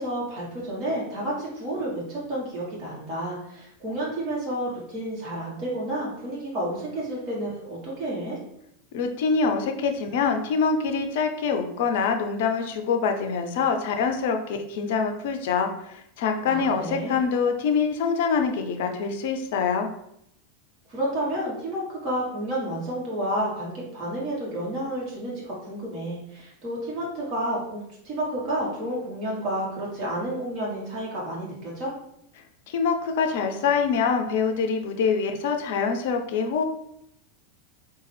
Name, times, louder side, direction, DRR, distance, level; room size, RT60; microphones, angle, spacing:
voice 1, 0.0-8.4 16.4-17.2 20.9-31.9, right 1 dB, 40° right, -6 dB, 1.2 m, -30 dB
voice 2, 8.9-19.9 32.7-36.6, left 5 dB, 55° left, 5 dB, 0.4 m, -25 dB
3.7 x 2.2 x 3.2 m, 0.75 s
figure-of-eight pair, 85°, 0 cm